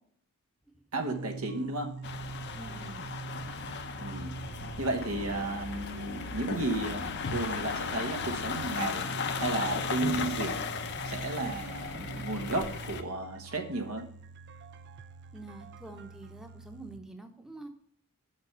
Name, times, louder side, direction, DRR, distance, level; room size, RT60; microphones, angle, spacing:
voice 1, 0.9-2.0 4.0-4.4 4.8-9.1 9.3-10.6 11.1-14.1, right 2 dB, 85° right, 4 dB, 1.4 m, -33 dB
sound 1, 1.0-17.0, right 4 dB, 50° right, 0.4 m, -44 dB
sound 2, 2.0-13.0, left 5 dB, 50° left, 0.7 m, -36 dB
voice 2, 2.5-3.0 15.3-17.7, right 2 dB, 5° right, 4 dB, 0.8 m, -46 dB
sound 3, 3.2-13.0, left 2 dB, 80° left, 0.9 m, -48 dB
6.6 x 5.9 x 6.8 m, 0.62 s
head